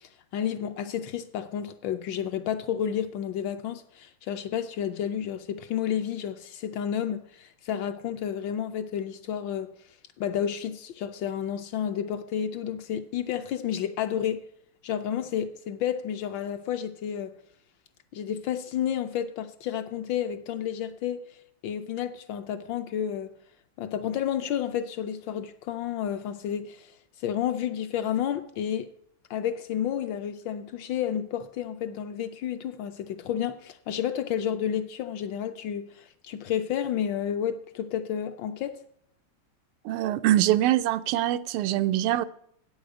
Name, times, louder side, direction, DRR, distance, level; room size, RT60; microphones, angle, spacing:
voice 1, 0.0-9.7 10.2-14.4 14.8-17.3 18.1-21.2 21.6-23.3 23.8-26.9 27.2-28.9 29.3-38.8, left 9 dB, 70° left, 1.2 m, -31 dB
voice 2, 39.8-42.2, right 13 dB, 90° right, 1.5 m, -24 dB
8.5 x 6.4 x 8.1 m
omnidirectional pair, 2.4 m